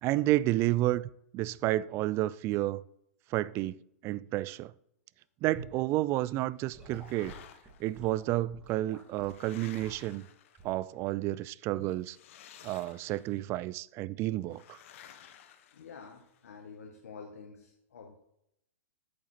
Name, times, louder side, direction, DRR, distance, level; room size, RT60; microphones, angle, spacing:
voice 1, 0.0-2.8 3.3-4.7 5.4-7.3 7.8-10.3 10.6-12.2 12.6-14.8, right 16 dB, 30° right, 0.3 m, -31 dB
Gurgling / Sink (filling or washing) / Liquid, 5.5-5.8 6.7-9.4 9.8-10.1 10.6-10.8 11.8-12.0, right 3 dB, 15° right, 2.7 m, -49 dB
sound 1, 6.7-8.0 8.8-10.9 12.0-13.4 14.5-16.4, left 10 dB, 55° left, 0.8 m, -54 dB
voice 2, 15.7-18.2, left 5 dB, 70° left, 1.2 m, -48 dB
8.7 x 6.8 x 4.2 m
hypercardioid pair, 115°, 8 cm